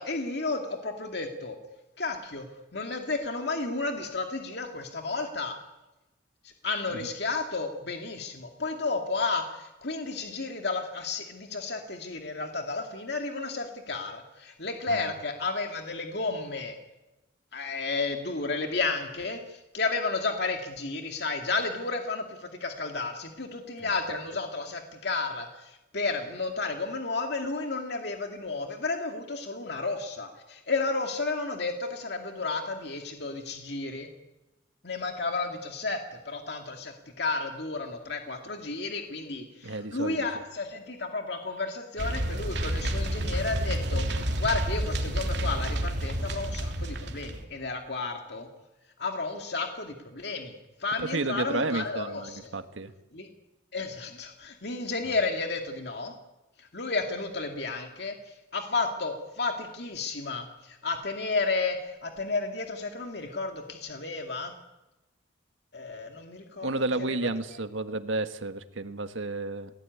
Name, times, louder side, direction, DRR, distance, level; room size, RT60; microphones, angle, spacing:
voice 1, 0.0-1.6 2.0-2.5 2.7-5.6 6.6-16.8 17.5-34.1 34.8-48.5 49.0-50.5 50.8-52.5 53.1-53.3 53.7-56.1 56.6-64.5 65.7-66.7 67.0-67.2, left 3 dB, 55° left, 3 dB, 2.5 m, -32 dB
voice 2, 23.8-24.2 39.6-40.3 51.0-52.9 66.6-69.7, right 2 dB, 85° right, 9 dB, 1.7 m, -32 dB
sound 1, 42.0-47.4, right 1 dB, 60° right, 3.2 m, -30 dB
29.0 x 18.5 x 9.6 m, 1.0 s
head